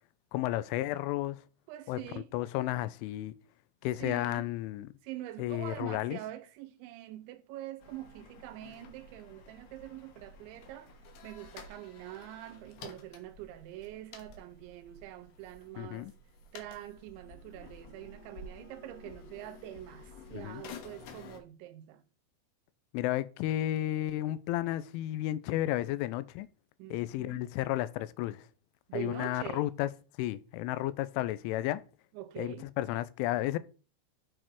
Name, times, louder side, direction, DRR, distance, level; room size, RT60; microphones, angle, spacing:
voice 1, 0.3-1.4 1.9-3.3 3.8-4.9 5.4-6.2 15.8-16.1 20.3-20.6 22.9-26.5 26.9-28.5 28.9-29.9 30.2-31.8 32.4-33.6, left 15 dB, 85° left, 3.1 m, -32 dB
voice 2, 1.7-2.3 4.0-4.5 5.0-10.9 11.2-16.1 16.5-22.0 26.8-27.5 28.9-29.7 32.1-32.7, right 14 dB, 85° right, 2.8 m, -45 dB
sound 1, 7.8-21.4, left 4 dB, 70° left, 3.1 m, -51 dB
7.9 x 6.5 x 4.5 m
omnidirectional pair, 5.5 m